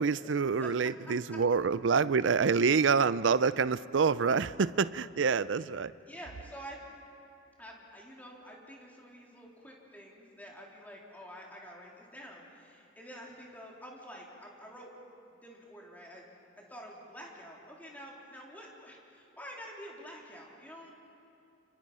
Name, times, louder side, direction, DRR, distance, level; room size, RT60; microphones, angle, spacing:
voice 1, 0.0-5.9, right 5 dB, 70° right, 16 dB, 0.5 m, -27 dB
voice 2, 6.0-6.8 7.6-14.9 15.3-16.2 16.6-20.9, equal, 10° left, -3 dB, 3.6 m, -48 dB
29.5 x 26.5 x 5.6 m, 2.7 s
head